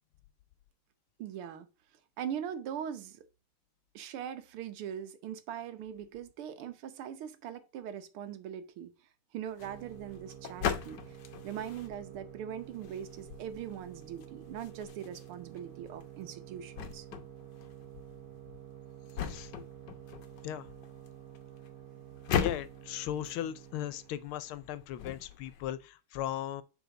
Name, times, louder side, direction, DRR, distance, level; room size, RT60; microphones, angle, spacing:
voice 1, 1.2-1.7 2.2-3.3 4.0-8.9 9.3-11.0 11.4-17.1, right 9 dB, 85° right, 1.8 m, -41 dB
sound 1, 9.5-25.6, left 8 dB, 60° left, 1.4 m, -40 dB
sound 2, 9.6-24.2, right 11 dB, 55° right, 1.1 m, -50 dB
voice 2, 22.3-26.6, left 11 dB, 85° left, 1.5 m, -37 dB
7.1 x 3.9 x 3.8 m
omnidirectional pair, 2.3 m